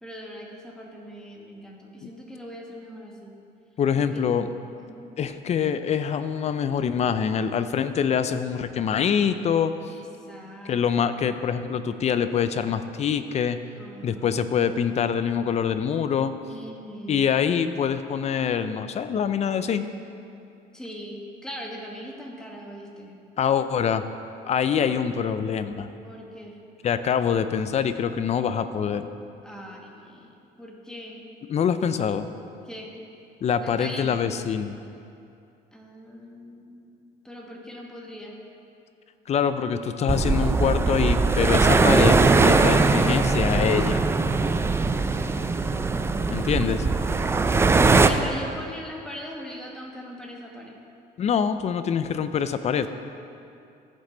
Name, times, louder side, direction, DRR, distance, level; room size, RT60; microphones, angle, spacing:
voice 1, 0.0-3.3 4.0-4.3 4.8-5.1 9.9-11.2 13.8-14.5 16.5-17.4 20.7-23.2 26.0-26.6 29.4-31.2 32.6-32.9 33.6-34.2 35.7-36.8 37.2-38.4 48.1-50.8, equal, 5° left, -2 dB, 1.4 m, -40 dB
voice 2, 3.8-4.5 5.2-9.7 10.6-13.6 14.0-16.3 17.1-19.9 23.4-24.0 24.5-25.9 26.8-29.1 31.5-32.3 33.4-34.7 39.3-44.0 46.3-46.9 51.2-52.9, left 7 dB, 40° left, 11 dB, 0.5 m, -25 dB
sound 1, 40.1-48.1, right 3 dB, 15° right, 0.4 m, -20 dB
14.5 x 5.5 x 3.8 m, 2.6 s
cardioid pair, 110°, 17 cm